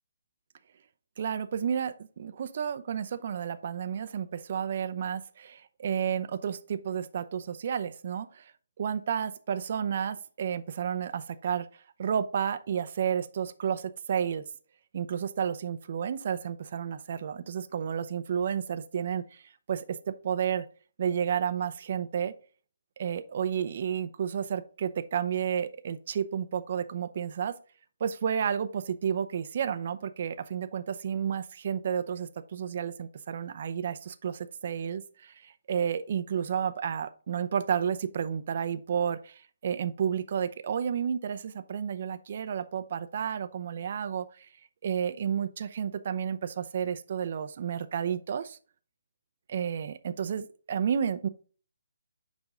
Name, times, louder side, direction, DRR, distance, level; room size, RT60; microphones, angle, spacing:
voice 1, 1.2-8.5 8.8-11.7 12.0-14.4 14.9-19.4 19.7-20.7 21.0-22.3 23.0-27.5 28.0-44.5 44.8-48.6 49.5-51.3, right 8 dB, 50° right, 12 dB, 0.6 m, -31 dB
7.4 x 5.2 x 3.7 m, 0.40 s
figure-of-eight pair, 145°, 0 cm